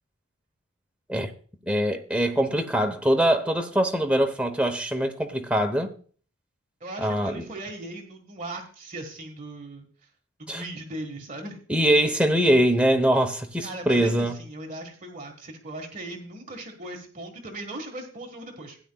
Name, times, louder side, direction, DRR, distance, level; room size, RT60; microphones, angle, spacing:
voice 1, 1.7-5.9 7.0-7.5 10.5-10.6 11.7-14.4, equal, 5° right, 0.7 m, -23 dB
voice 2, 6.8-9.9 10.4-11.6 13.6-18.8, right 2 dB, 35° right, 1.4 m, -38 dB
16.0 x 9.8 x 2.2 m
head